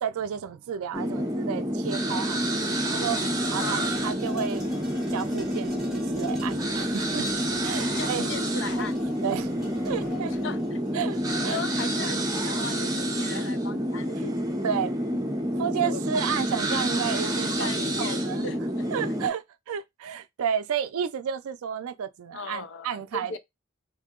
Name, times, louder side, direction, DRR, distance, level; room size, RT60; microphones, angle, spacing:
voice 1, 0.0-3.2 3.5-4.6 5.1-7.3 7.6-8.3 8.8-8.9 9.2-9.5 9.8-10.3 10.9-11.6 14.2-14.3 14.6-15.2 15.6-17.7 18.0-18.5 18.9-23.4, right 8 dB, 85° right, 0.4 m, -32 dB
sound 1, 0.9-19.3, right 1 dB, 15° right, 0.5 m, -28 dB
sound 2, 1.9-2.0 2.3-13.0, left 2 dB, ahead, 1.0 m, -44 dB
voice 2, 3.6-3.9 8.0-9.0 10.2-10.8 11.3-14.4 15.8-16.0 17.6-18.6 22.3-23.4, left 4 dB, 60° left, 0.4 m, -37 dB
2.8 x 2.7 x 3.6 m
head